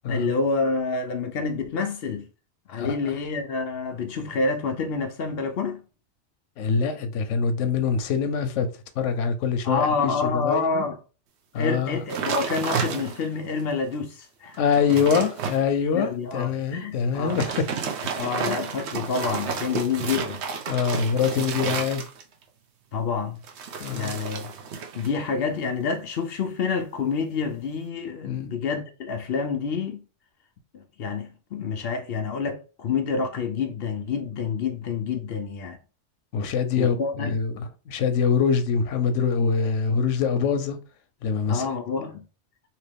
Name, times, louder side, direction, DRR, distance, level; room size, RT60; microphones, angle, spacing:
voice 1, 0.1-2.3 2.7-5.8 9.6-11.0 11.5-14.6 15.9-17.4 18.2-20.4 22.9-23.4 23.9-24.5 25.0-30.0 30.7-35.8 36.8-37.4 41.5-42.2, left 5 dB, 65° left, 0.7 m, -28 dB
voice 2, 6.6-8.7 9.0-10.8 11.5-12.0 14.6-17.6 18.0-18.6 20.7-22.0 23.8-24.1 28.2-28.5 36.3-40.8 41.2-41.7, left 6 dB, 85° left, 1.0 m, -24 dB
sound 1, 12.1-13.4 13.9-14.0 14.5-15.6 17.1-22.4 23.4-25.1 25.4-25.8, right 6 dB, 70° right, 0.9 m, -31 dB
2.9 x 2.9 x 3.4 m
omnidirectional pair, 1.2 m